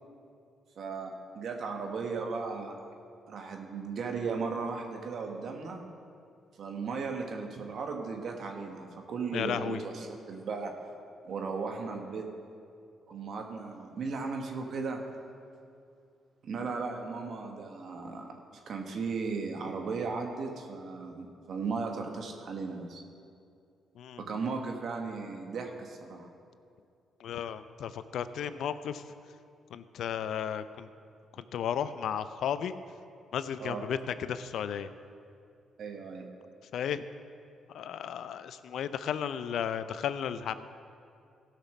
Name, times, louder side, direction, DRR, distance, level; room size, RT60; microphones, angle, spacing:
voice 1, 0.7-2.7 3.3-5.8 6.6-10.7 11.2-12.3 13.1-15.0 16.4-18.3 18.7-23.0 24.2-26.3 33.6-33.9 35.8-36.3, right 4 dB, 65° right, 2 dB, 1.5 m, -36 dB
voice 2, 9.3-9.8 24.0-24.2 27.2-29.0 29.7-30.9 31.5-32.7 33.3-34.9 36.7-37.0 37.7-40.7, left 8 dB, 70° left, 13 dB, 0.5 m, -34 dB
15.5 x 5.9 x 6.1 m, 2.4 s
hypercardioid pair, 50°, 0 cm